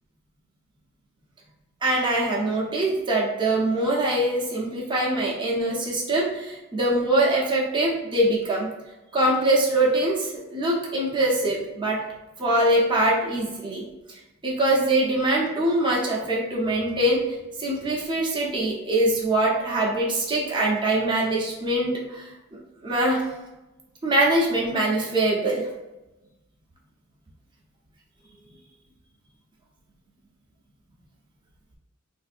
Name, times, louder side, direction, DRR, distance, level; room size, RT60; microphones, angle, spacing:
voice 1, 1.8-8.7 9.1-12.0 12.4-13.8 14.4-17.3 17.6-23.2 24.0-25.7, right 1 dB, 25° right, -4 dB, 0.7 m, -23 dB
3.8 x 2.6 x 2.5 m, 1.0 s
head